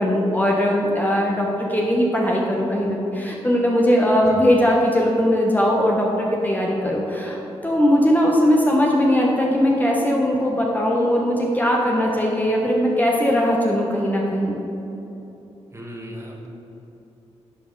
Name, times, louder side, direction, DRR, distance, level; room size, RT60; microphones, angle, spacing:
voice 1, 0.0-14.5, equal, 15° left, -2 dB, 1.2 m, -20 dB
voice 2, 15.7-16.5, equal, 20° right, -1 dB, 1.6 m, -37 dB
10.5 x 4.9 x 3.9 m, 3.0 s
supercardioid pair, 50°, 12 cm